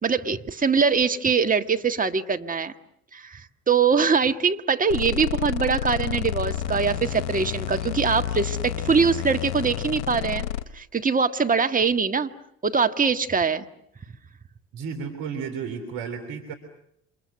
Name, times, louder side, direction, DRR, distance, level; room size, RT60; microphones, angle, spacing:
voice 1, 0.0-2.7 3.1-10.5 10.7-12.3 12.6-13.7, right 5 dB, 25° right, 7 dB, 1.7 m, -23 dB
sound 1, 4.9-10.6, left 10 dB, 75° left, 1.2 m, -30 dB
voice 2, 14.7-16.5, right 6 dB, 65° right, 4 dB, 3.4 m, -33 dB
29.0 x 27.0 x 6.5 m, 0.75 s
hypercardioid pair, 55°, 35 cm